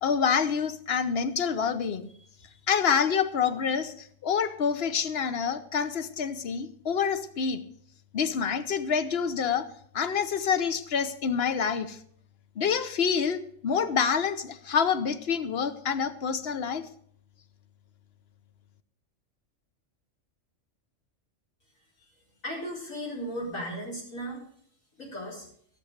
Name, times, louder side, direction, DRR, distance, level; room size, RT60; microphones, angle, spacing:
voice 1, 0.0-2.1 2.7-7.6 8.1-9.7 9.9-12.0 12.6-16.8, left 6 dB, 55° left, 12 dB, 1.1 m, -27 dB
voice 2, 22.4-24.4 25.0-25.4, equal, 85° left, -3 dB, 5.0 m, -35 dB
15.5 x 6.7 x 6.5 m, 0.62 s
omnidirectional pair, 1.4 m